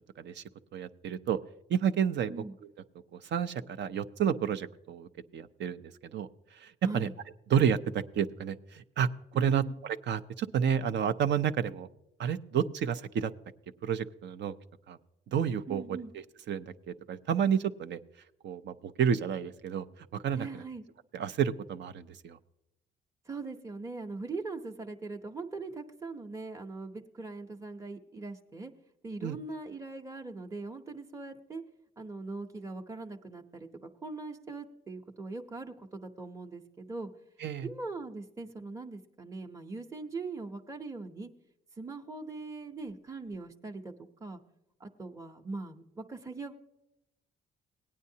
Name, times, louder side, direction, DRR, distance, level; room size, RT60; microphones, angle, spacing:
voice 1, 0.7-1.4 1.7-2.4 3.1-7.1 7.5-9.1 9.3-11.9 12.2-13.3 13.8-14.5 14.9-15.0 15.3-16.0 16.5-18.0 18.4-19.8 20.1-20.5 21.1-22.4 29.2-29.4 37.4-37.7, right 8 dB, 65° right, 11 dB, 0.6 m, -30 dB
voice 2, 6.8-7.1 9.3-9.7 15.7-16.1 20.3-20.8 23.3-28.7 29.0-31.6 32.0-37.1 37.6-41.3 41.8-43.9 44.2-44.4 44.8-46.5, right 3 dB, 15° right, 2 dB, 0.8 m, -41 dB
18.0 x 9.4 x 2.8 m, 0.88 s
cardioid pair, 90°, 20 cm